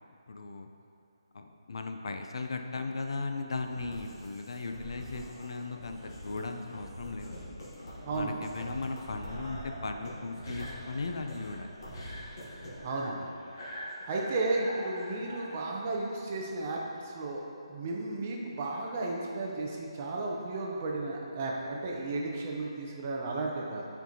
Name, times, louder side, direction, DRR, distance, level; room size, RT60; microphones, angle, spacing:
voice 1, 0.3-0.7 1.3-7.4 8.1-11.7, left 3 dB, 60° left, 5 dB, 0.4 m, -37 dB
sound 1, 3.5-15.5, equal, 45° left, 1.3 m, -44 dB
voice 2, 8.0-8.4 12.8-13.3 14.1-17.4 17.7-23.9, right 2 dB, 25° right, -1 dB, 0.5 m, -34 dB
7.9 x 4.5 x 2.8 m, 2.5 s
hypercardioid pair, 170°, 3 cm